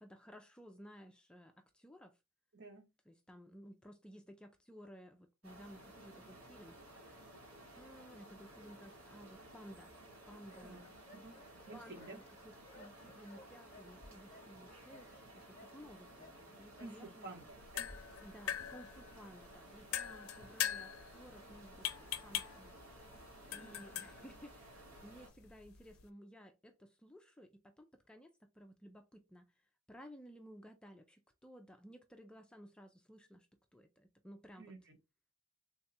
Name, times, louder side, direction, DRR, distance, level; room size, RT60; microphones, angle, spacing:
voice 1, 0.0-2.1 3.1-6.8 7.8-9.9 10.3-10.9 11.7-15.1 15.3-17.3 18.2-20.9 21.1-21.9 22.2-22.8 23.5-27.5 27.8-28.3 28.6-29.5 29.9-33.5 33.7-33.9 34.2-34.7, equal, 5° left, 0.3 m, -56 dB
voice 2, 2.5-2.8 10.6-10.8 11.1-11.4 11.7-12.2 16.8-17.9 23.4-23.8 34.6-34.8, right 3 dB, 55° right, 1.2 m, -51 dB
sound 1, 5.4-25.3, right 1 dB, 85° right, 1.7 m, -56 dB
sound 2, 10.3-16.8, left 2 dB, 30° left, 0.7 m, -62 dB
sound 3, 17.5-26.1, left 10 dB, 80° left, 0.4 m, -43 dB
3.5 x 2.3 x 4.0 m
head